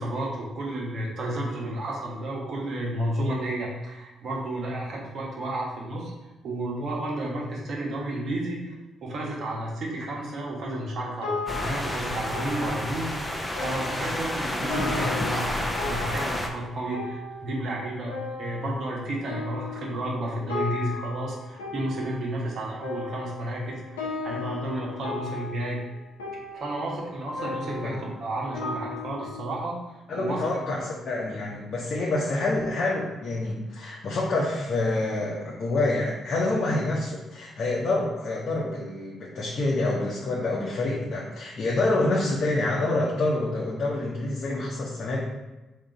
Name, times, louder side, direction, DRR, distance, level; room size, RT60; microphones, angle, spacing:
voice 1, 0.0-6.1 6.4-8.7 9.0-25.8 26.5-29.8 30.2-30.8, right 1 dB, 60° right, -3 dB, 1.2 m, -32 dB
sound 1, 10.7-29.4, left 4 dB, 90° left, 0.7 m, -37 dB
sound 2, 11.5-16.5, left 1 dB, 15° left, 0.8 m, -30 dB
voice 2, 30.1-45.2, left 2 dB, 55° left, -4 dB, 0.8 m, -27 dB
3.8 x 2.9 x 4.5 m, 1.1 s
hypercardioid pair, 45°, 0 cm